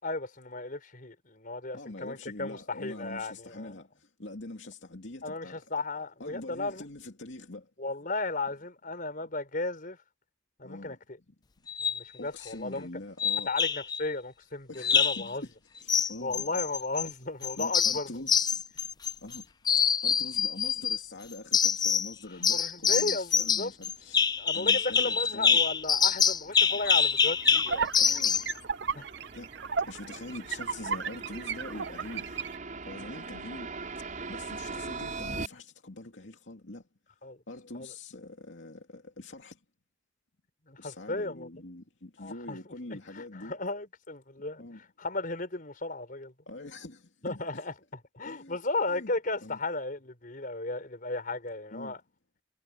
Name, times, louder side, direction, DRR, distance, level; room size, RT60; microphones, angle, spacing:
voice 1, 0.0-3.7 5.2-6.9 7.8-10.0 10.6-11.0 11.8-12.9 13.5-15.4 16.2-18.1 22.5-23.7 24.4-27.9 28.9-29.1 37.2-37.4 37.7-37.9 40.7-41.5 42.2-42.6 43.1-44.6 45.0-46.3 47.2-47.7 48.1-52.0, left 2 dB, 50° left, 4.7 m, -35 dB
voice 2, 1.7-5.6 6.2-7.7 10.6-11.0 11.3-11.4 12.2-13.5 14.7-15.5 15.8-16.5 17.6-18.6 19.2-19.5 19.8-25.6 28.0-28.4 29.3-29.5 29.9-32.4 32.8-33.7 34.3-36.8 37.5-39.6 40.8-43.6 44.6-44.8 46.5-47.6 48.2-48.6 48.9-49.1 49.4-49.6 51.7-52.0, left 2 dB, 80° left, 2.5 m, -44 dB
sound 1, 11.7-12.0 13.2-14.0 14.8-15.3 15.9-17.1 17.4-19.4 19.6-21.0 21.5-22.1 22.4-28.5, left 6 dB, 20° left, 0.4 m, -25 dB
sound 2, 24.0-35.5, right 3 dB, 45° right, 5.6 m, -42 dB
sound 3, 26.6-32.6, right 5 dB, 65° right, 0.7 m, -35 dB
head